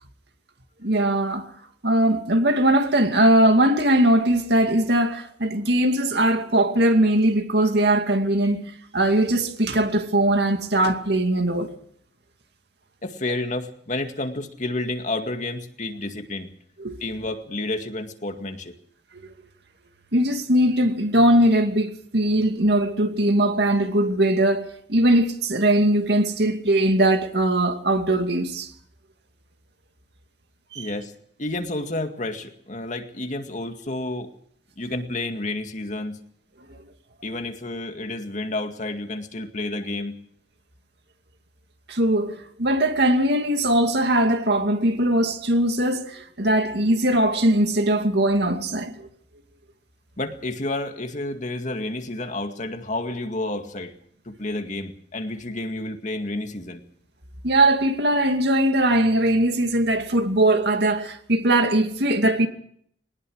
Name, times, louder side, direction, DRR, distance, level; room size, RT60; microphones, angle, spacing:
voice 1, 0.8-1.5 1.8-11.7 16.8-17.0 20.1-28.7 30.7-30.9 36.7-36.8 41.9-49.1 57.4-62.5, right 1 dB, 60° right, 2.4 m, -20 dB
voice 2, 13.0-16.5 17.0-18.7 30.8-31.1 31.4-34.3 34.8-36.2 37.2-40.1 50.2-53.9 54.3-56.8, left 2 dB, 40° left, 2.1 m, -30 dB
21.0 x 19.5 x 6.5 m
head